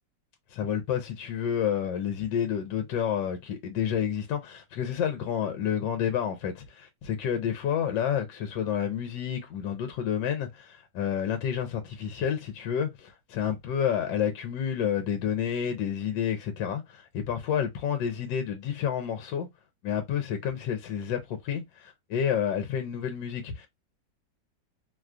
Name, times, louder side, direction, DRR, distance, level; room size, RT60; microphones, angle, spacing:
voice 1, 0.5-19.5 19.8-23.7, left 8 dB, 75° left, 1.2 m, -29 dB
3.2 x 2.3 x 2.4 m
omnidirectional pair, 2.1 m